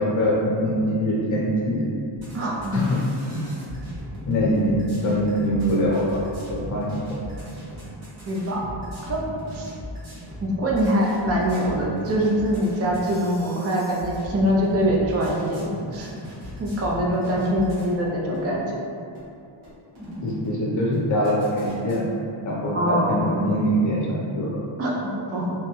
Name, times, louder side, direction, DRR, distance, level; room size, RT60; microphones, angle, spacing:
voice 1, 0.0-1.9 2.7-3.0 3.3-3.4 4.3-6.2 6.5-7.0 20.2-22.1 22.4-24.5, equal, 40° left, -5 dB, 0.7 m, -23 dB
sound 1, 2.1-18.0 18.3-18.5 19.1-19.3 19.6-20.6 20.9-22.0, left 1 dB, 85° right, 1.3 m, -38 dB
voice 2, 2.3-2.8 8.2-8.6 9.1-9.2 9.5-9.7 10.4-16.1 16.6-18.8 22.7-23.4 24.8-25.5, equal, 35° right, -3 dB, 0.4 m, -24 dB
2.9 x 2.1 x 3.0 m, 2.5 s
wide cardioid pair, 140°, 46 cm